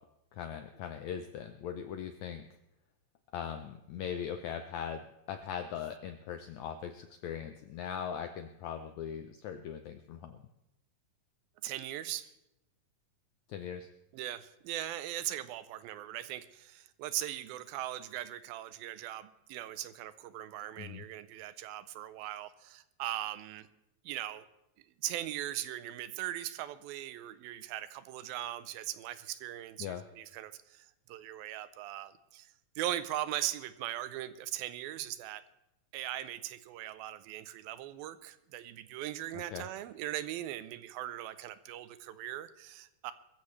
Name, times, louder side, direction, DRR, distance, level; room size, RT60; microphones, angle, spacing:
voice 1, 0.3-2.5 3.3-10.4 13.5-13.9 20.8-21.0 29.8-30.0 39.3-39.7, left 8 dB, 80° left, 8 dB, 1.6 m, -40 dB
voice 2, 11.6-12.3 14.1-23.7 24.1-24.5 25.0-32.5 32.8-35.4 35.9-43.1, right 13 dB, 90° right, 13 dB, 2.5 m, -39 dB
22.0 x 14.5 x 3.2 m, 0.86 s
omnidirectional pair, 4.1 m